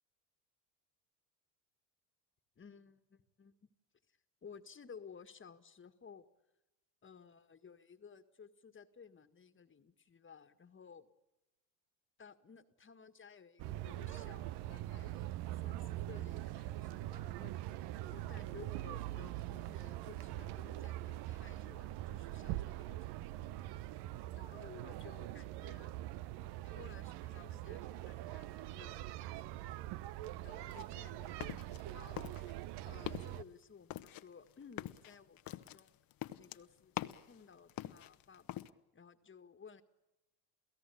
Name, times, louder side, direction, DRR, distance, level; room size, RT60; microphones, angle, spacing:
voice 1, 2.6-3.7 4.1-6.3 7.0-11.1 12.2-17.6 18.1-23.1 24.4-26.1 26.6-29.9 30.4-32.2 32.8-36.0 36.4-38.6 38.9-39.8, left 6 dB, 25° left, 10 dB, 1.8 m, -57 dB
sound 1, 13.6-33.4, right 15 dB, 60° right, 0.9 m, -43 dB
sound 2, 30.7-31.9 32.2-32.7 33.0-33.4 33.9-37.4 37.7-38.7, left 13 dB, 50° left, 1.1 m, -44 dB
29.0 x 16.5 x 8.6 m, 1.0 s
supercardioid pair, 90°, 46 cm